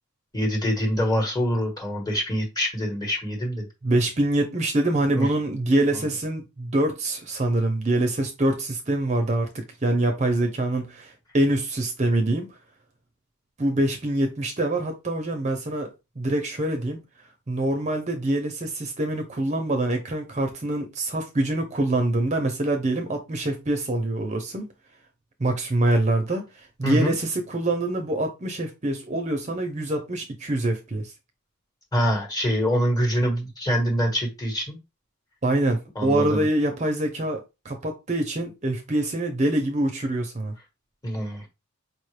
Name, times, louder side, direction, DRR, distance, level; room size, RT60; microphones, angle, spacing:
voice 1, 0.3-3.7 5.1-5.3 26.8-27.1 31.9-34.8 35.9-36.5 41.0-41.5, equal, 20° left, 1.3 m, -25 dB
voice 2, 3.8-12.5 13.6-15.9 16.2-17.0 17.5-24.7 25.4-26.4 26.8-31.1 35.4-40.5, right 1 dB, 35° right, 0.7 m, -25 dB
4.9 x 2.3 x 3.3 m
head